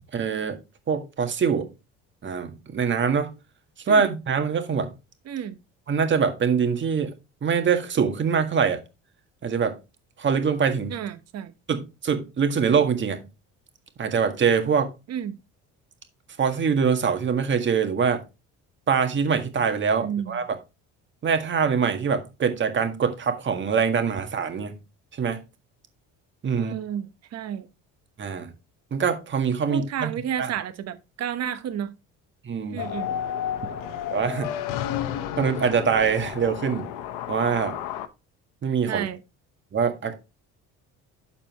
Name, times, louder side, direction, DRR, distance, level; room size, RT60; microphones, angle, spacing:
voice 1, 0.1-0.6 0.9-1.7 2.2-3.3 3.9-4.9 5.9-7.1 7.4-8.8 9.4-9.8 10.2-11.0 11.7-13.2 14.0-14.9 16.4-18.2 18.9-20.6 21.2-24.8 25.1-25.4 26.4-26.7 28.2-28.5 28.9-30.1 30.4-30.5 32.4-32.8 34.1-34.6 35.4-36.9 37.3-37.8 38.6-39.1 39.7-40.1, right 6 dB, 40° right, 1.7 m, -24 dB
voice 2, 5.3-5.6 10.9-11.5 15.1-15.4 19.9-20.4 26.5-27.7 29.7-31.9 32.7-33.1 38.9-39.2, right 9 dB, 55° right, 1.1 m, -31 dB
sound 1, 32.8-38.1, left 10 dB, 90° left, 0.9 m, -31 dB
12.5 x 4.3 x 3.0 m
cardioid pair, 105°, 31 cm